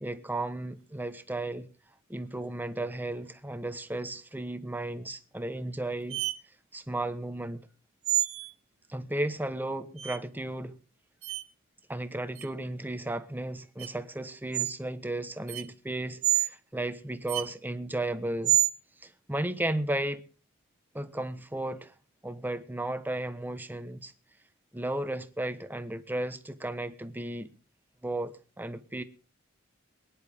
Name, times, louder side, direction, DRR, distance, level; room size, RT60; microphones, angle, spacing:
voice 1, 0.0-1.7 2.1-6.2 6.7-7.6 8.9-10.7 11.9-18.6 19.0-20.2 20.9-21.9 22.2-24.1 24.7-27.5 28.0-29.0, right 1 dB, 10° right, 1.1 m, -34 dB
sound 1, 6.1-6.3 8.0-8.5 10.0-10.2 11.2-11.4 12.3-12.5 13.8-13.9 14.5-14.7 15.5-15.6 16.2-16.5 17.3-17.5 18.4-18.7, right 13 dB, 75° right, 1.1 m, -27 dB
23.0 x 10.5 x 3.6 m
head